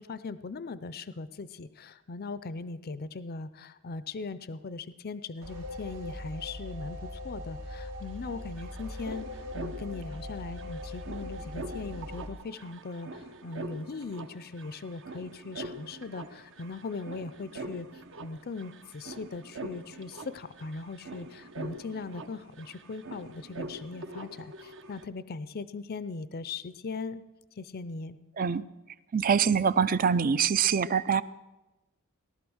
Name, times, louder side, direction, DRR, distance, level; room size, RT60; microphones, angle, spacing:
voice 1, 0.0-17.9 18.2-27.2 27.5-28.2, left 4 dB, 45° left, 15 dB, 0.5 m, -39 dB
sound 1, 5.4-12.3, left 1 dB, 80° right, 2.9 m, -40 dB
sound 2, 8.0-8.1 8.3-25.0, right 2 dB, 60° right, 1.0 m, -44 dB
voice 2, 29.1-31.2, right 7 dB, 40° right, 17 dB, 0.5 m, -24 dB
18.0 x 12.0 x 6.3 m, 1.1 s
head